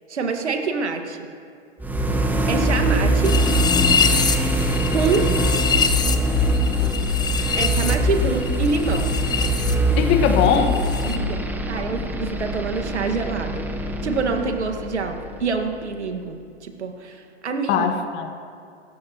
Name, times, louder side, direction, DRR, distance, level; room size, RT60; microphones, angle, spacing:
voice 1, 0.1-1.2 2.5-3.3 4.9-5.3 7.6-9.1 11.0-13.7 14.0-17.9, right 4 dB, 75° right, 5 dB, 1.9 m, -26 dB
sound 1, 1.8-15.7, equal, 5° right, 1.3 m, -23 dB
sound 2, 3.2-9.7 10.0-11.2, left 6 dB, 10° left, 0.8 m, -25 dB
voice 2, 10.0-10.8 17.7-18.3, left 7 dB, 30° left, 6 dB, 1.6 m, -20 dB
28.5 x 14.0 x 3.1 m, 2.3 s
figure-of-eight pair, 110°, 34 cm